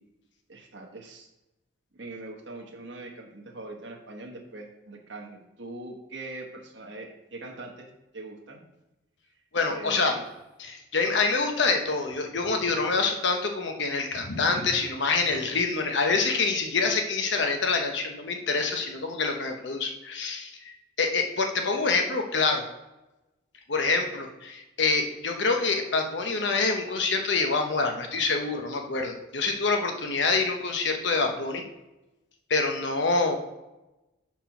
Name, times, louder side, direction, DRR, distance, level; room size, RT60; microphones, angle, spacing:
voice 1, 0.5-1.3 1.9-7.9 8.1-8.6 9.7-10.2, right 2 dB, 70° right, 2 dB, 1.2 m, -42 dB
voice 2, 9.5-10.1 10.6-20.7 21.0-22.6 23.7-31.6 32.5-33.4, left 4 dB, 70° left, 4 dB, 0.9 m, -26 dB
5.9 x 4.5 x 5.6 m, 1.0 s
head